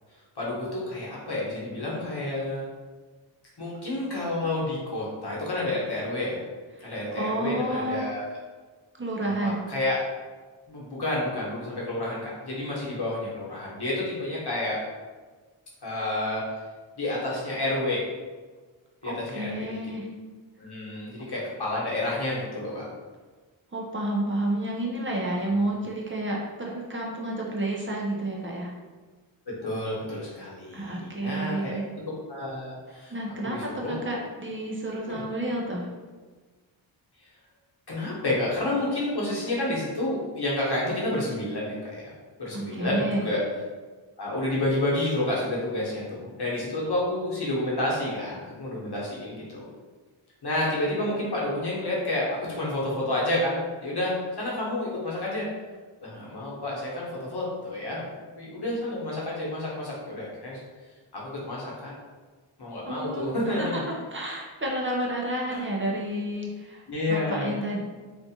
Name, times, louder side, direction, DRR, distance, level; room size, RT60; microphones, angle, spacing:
voice 1, 0.4-2.7 3.6-6.4 6.8-8.3 9.2-10.0 10.7-14.8 15.8-16.4 17.0-18.0 19.0-19.7 20.6-22.8 29.6-31.8 32.3-33.1 33.4-34.0 35.1-35.2 37.9-42.1 42.4-43.4 44.2-49.7 50.4-55.5 56.0-58.1 58.4-60.6 61.1-61.9 62.6-63.8 65.5-65.7 66.9-67.6, left 1 dB, 55° left, -5 dB, 1.0 m, -30 dB
voice 2, 7.1-8.1 9.0-9.6 19.1-20.1 23.7-28.7 30.7-31.9 33.1-35.9 42.5-43.2 62.8-63.3 63.6-66.8 67.1-67.8, right 1 dB, 25° right, -3 dB, 0.6 m, -30 dB
2.4 x 2.4 x 2.7 m, 1.4 s
wide cardioid pair, 55°, 48 cm